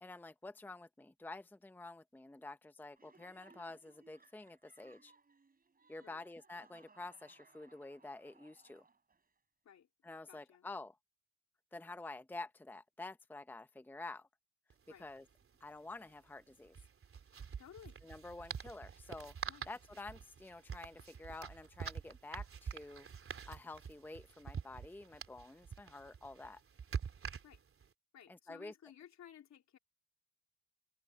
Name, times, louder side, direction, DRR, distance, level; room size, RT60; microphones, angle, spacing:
voice 1, 0.0-5.1 5.9-8.8 10.0-11.0 11.7-14.3 15.0-15.2 15.6-16.8 18.0-23.1 23.5-26.6 28.3-28.7, left 2 dB, 5° left, 0.8 m, -49 dB
Laughter, 3.0-9.3, right 4 dB, 30° right, 5.4 m, -65 dB
voice 2, 10.3-10.7 14.9-15.1 17.6-18.0 19.5-19.7 27.4-27.6 28.1-29.8, left 9 dB, 65° left, 3.5 m, -57 dB
sound 1, 14.7-14.8 15.0-15.2 16.6-27.9, right 6 dB, 45° right, 3.2 m, -46 dB
open air
cardioid pair, 90°, 30 cm